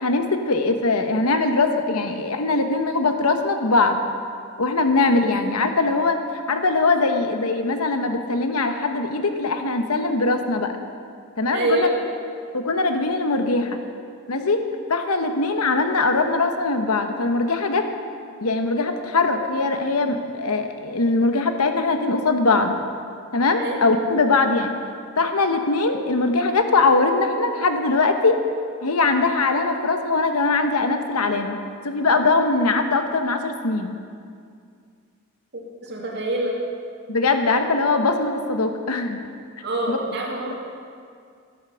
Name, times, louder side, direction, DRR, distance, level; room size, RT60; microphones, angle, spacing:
voice 1, 0.0-4.0 4.6-6.2 6.5-10.7 11.4-11.9 12.5-13.8 14.3-14.6 14.9-17.9 18.4-22.7 23.3-24.7 25.2-28.4 28.8-31.6 31.8-34.0 37.1-39.2 39.9-40.0 40.5-40.6, left 3 dB, 90° left, 6 dB, 1.1 m, -21 dB
voice 2, 11.5-12.0 23.6-23.8 35.8-36.6 39.6-40.6, right 1 dB, 50° right, -1 dB, 2.4 m, -25 dB
11.5 x 11.0 x 7.0 m, 2.3 s
head